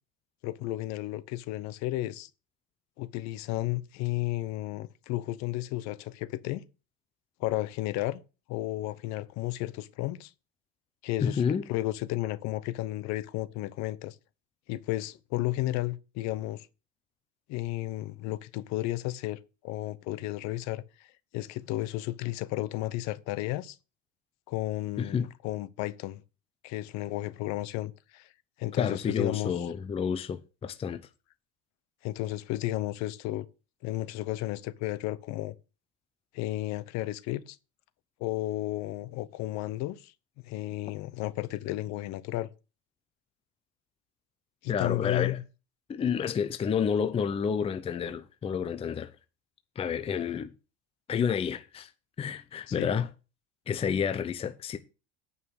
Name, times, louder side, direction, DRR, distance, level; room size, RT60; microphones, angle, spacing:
voice 1, 0.4-2.3 3.0-6.6 7.4-8.2 8.5-10.3 11.0-11.4 11.7-14.2 14.7-16.7 17.5-21.1 21.3-23.8 24.5-26.2 26.6-28.3 28.6-29.5 32.0-33.5 33.8-35.5 36.3-37.6 38.2-40.1 40.4-42.5 44.6-45.4 52.7-52.9, left 16 dB, 55° left, 0.9 m, -33 dB
voice 2, 11.2-11.6 25.0-25.3 28.8-31.0 44.7-45.4 45.9-49.1 49.8-50.5 51.1-51.9 52.2-53.1 53.7-54.8, left 7 dB, 20° left, 0.6 m, -29 dB
9.6 x 5.6 x 6.4 m
supercardioid pair, 135°, 33 cm